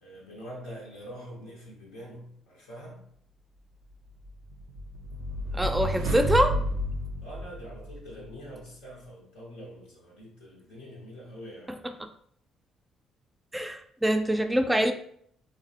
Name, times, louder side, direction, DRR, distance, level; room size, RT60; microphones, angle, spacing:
voice 1, 0.0-3.0 7.2-11.9, equal, 85° left, -3 dB, 0.6 m, -44 dB
sound 1, 4.3-8.1, equal, 80° right, 0.4 m, -31 dB
voice 2, 5.5-6.6 11.8-12.1 13.5-14.9, right 1 dB, 10° right, 6 dB, 0.3 m, -25 dB
3.1 x 2.1 x 2.8 m, 0.64 s
hypercardioid pair, 50°, 0 cm